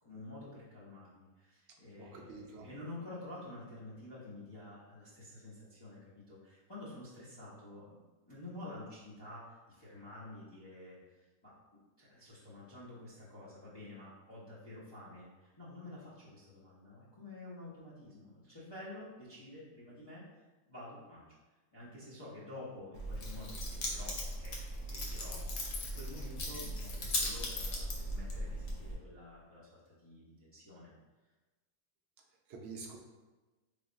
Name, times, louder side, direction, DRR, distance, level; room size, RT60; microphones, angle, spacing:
voice 1, 0.0-20.2 20.7-21.3 21.7-30.9, left 2 dB, 30° left, -9 dB, 0.5 m, -50 dB
voice 2, 2.0-2.7 32.5-33.0, right 4 dB, 65° right, 1 dB, 0.6 m, -47 dB
Keys jangling, 22.9-29.0, left 1 dB, 65° left, 1.0 m, -38 dB
3.3 x 2.3 x 3.8 m, 1.2 s
omnidirectional pair, 1.6 m